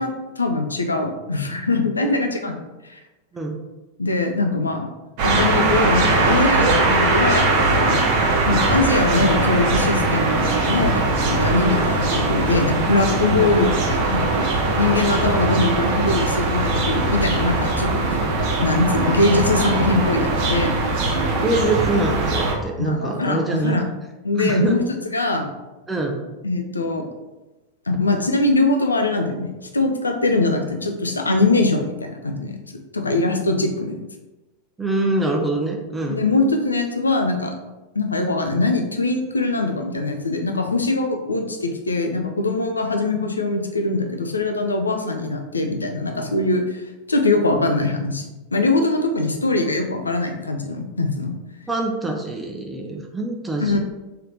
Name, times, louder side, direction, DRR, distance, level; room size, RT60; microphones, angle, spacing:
voice 1, 0.0-3.0 4.0-4.9 5.2-8.0 8.5-18.2 18.6-20.7 22.8-23.9 24.2-24.8 25.1-25.5 26.4-27.1 27.9-32.6 32.9-34.0 36.0-37.5 37.9-46.8 47.1-48.2 48.5-51.3 53.6-53.8, left 2 dB, 85° left, 5 dB, 0.5 m, -22 dB
sound 1, 5.2-22.5, right 2 dB, 50° right, 0.8 m, -20 dB
voice 2, 21.4-23.8 24.4-24.7 25.9-26.2 34.8-36.2 51.7-53.8, right 2 dB, 10° right, 2 dB, 0.6 m, -24 dB
3.3 x 2.8 x 3.7 m, 1.1 s
figure-of-eight pair, 90°, 0 cm